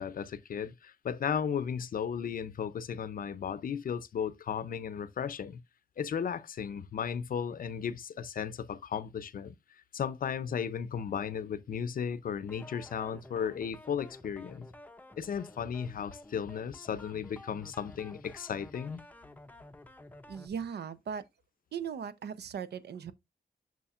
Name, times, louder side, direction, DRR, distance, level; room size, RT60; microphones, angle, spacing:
voice 1, 0.0-5.6 6.0-9.6 9.9-14.7 15.2-19.0, left 7 dB, 60° left, 0.5 m, -35 dB
sound 1, 12.5-20.5, left 1 dB, 10° left, 0.5 m, -52 dB
voice 2, 20.3-21.2 21.7-23.1, right 7 dB, 90° right, 0.7 m, -38 dB
7.0 x 6.1 x 2.4 m
wide cardioid pair, 175°, 17 cm